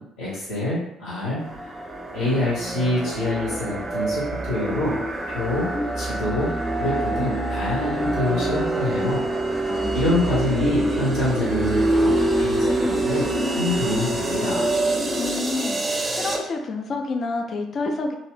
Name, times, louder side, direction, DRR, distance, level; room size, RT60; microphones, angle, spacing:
voice 1, 0.0-5.0 5.3-5.7 6.0-9.6 9.9-13.3 13.6-14.7, left 2 dB, 65° left, -6 dB, 1.0 m, -26 dB
sound 1, 1.4-16.4, right 1 dB, 20° right, 0.6 m, -25 dB
voice 2, 9.7-10.4 15.1-15.8 16.1-18.1, left 3 dB, 40° left, 3 dB, 0.5 m, -29 dB
2.8 x 2.7 x 3.1 m, 0.81 s
figure-of-eight pair, 45°, 0 cm